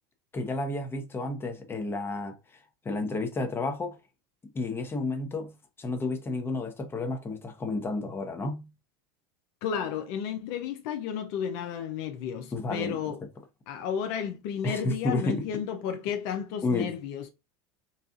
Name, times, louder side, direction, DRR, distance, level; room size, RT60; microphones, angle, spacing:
voice 1, 0.3-2.3 2.8-4.0 4.5-5.5 5.8-8.7 12.5-13.0 14.6-15.5 16.6-16.9, left 2 dB, 20° left, 0.9 m, -31 dB
voice 2, 9.6-13.2 13.7-17.3, left 8 dB, 65° left, 0.5 m, -32 dB
4.2 x 2.4 x 2.4 m
hypercardioid pair, 100°, 12 cm